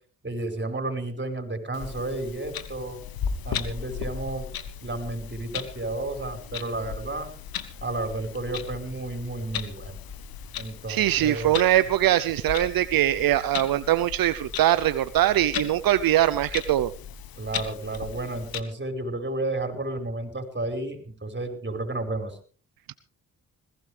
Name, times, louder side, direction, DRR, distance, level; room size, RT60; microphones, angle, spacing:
voice 1, 0.2-3.0 3.4-4.5 4.8-7.3 7.8-10.0 10.6-11.5 17.4-22.4, right 2 dB, 30° right, 6 dB, 5.1 m, -32 dB
Clock, 1.7-18.6, left 8 dB, 80° left, 1.5 m, -37 dB
voice 2, 10.9-16.9, right 13 dB, 75° right, 14 dB, 0.7 m, -22 dB
21.0 x 16.5 x 3.4 m, 0.40 s
supercardioid pair, 50°, 35 cm